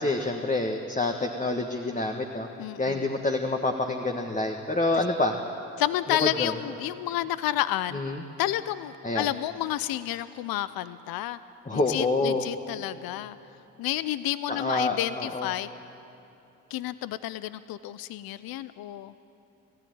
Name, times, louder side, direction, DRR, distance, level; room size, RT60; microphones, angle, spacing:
voice 1, 0.0-2.5 2.8-5.4 6.2-6.5 7.9-8.2 9.0-9.3 11.6-12.4 14.5-15.5, left 2 dB, 20° left, 3 dB, 1.6 m, -27 dB
voice 2, 2.6-3.0 5.8-8.0 8.4-11.4 11.7-13.4 13.8-15.7 16.7-19.1, left 13 dB, 75° left, 15 dB, 0.6 m, -30 dB
19.5 x 15.0 x 9.6 m, 2.9 s
supercardioid pair, 55°, 36 cm